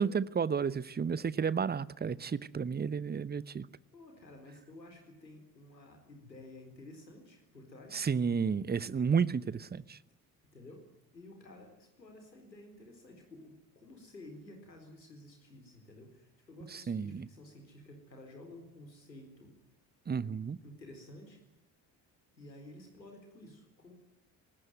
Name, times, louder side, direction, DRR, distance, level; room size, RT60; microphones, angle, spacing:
voice 1, 0.0-3.7 7.9-10.0 16.7-17.3 20.1-20.6, right 6 dB, 20° right, 0.9 m, -32 dB
voice 2, 3.9-8.1 10.0-10.1 10.5-10.8 11.1-19.5 20.6-21.4 22.3-23.9, left 1 dB, 85° left, 4.2 m, -52 dB
24.0 x 19.5 x 9.4 m
figure-of-eight pair, 45°, 49 cm